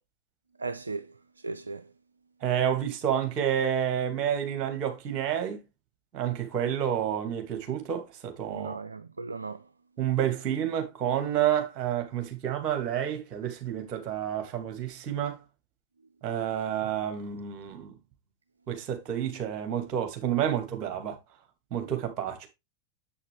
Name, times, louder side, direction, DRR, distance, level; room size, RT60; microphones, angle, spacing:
voice 1, 0.6-1.9 8.5-9.6, right 4 dB, 80° right, 0.4 m, -37 dB
voice 2, 2.4-5.6 6.1-8.8 10.0-15.4 16.2-17.9 18.7-21.2 21.7-22.5, right 9 dB, 35° right, 2.3 m, -29 dB
7.6 x 6.4 x 3.5 m
figure-of-eight pair, 90°, 0 cm